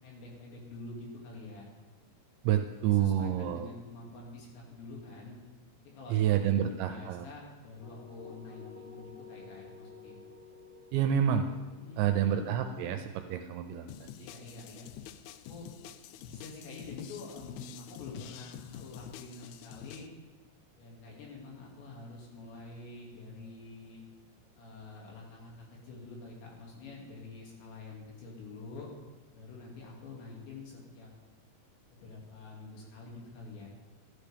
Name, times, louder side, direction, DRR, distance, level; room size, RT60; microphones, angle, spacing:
voice 1, 0.0-1.7 2.9-5.4 5.8-10.2 11.8-13.0 14.2-14.9 15.5-15.7 16.1-20.1 20.8-24.0 24.6-28.9 29.3-31.1 31.9-33.7, left 3 dB, 70° left, -2 dB, 4.3 m, -47 dB
voice 2, 2.4-3.7 6.1-7.3 10.9-11.5 12.0-14.1, right 10 dB, 85° right, 7 dB, 2.7 m, -28 dB
sound 1, 7.8-13.7, left 4 dB, 30° left, 2.8 m, -52 dB
sound 2, 13.9-20.1, left 10 dB, 85° left, 3.0 m, -47 dB
14.0 x 12.5 x 3.4 m, 1.2 s
omnidirectional pair, 5.6 m